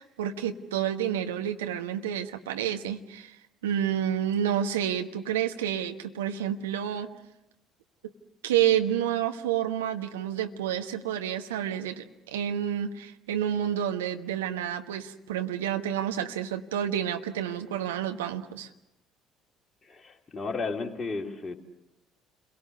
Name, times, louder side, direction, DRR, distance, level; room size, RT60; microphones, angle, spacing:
voice 1, 0.0-3.4 3.6-7.1 8.4-18.7, right 10 dB, 75° right, 6 dB, 1.3 m, -29 dB
voice 2, 19.8-21.6, left 4 dB, 25° left, 2 dB, 3.1 m, -33 dB
30.0 x 22.5 x 6.9 m, 0.86 s
figure-of-eight pair, 55°, 0 cm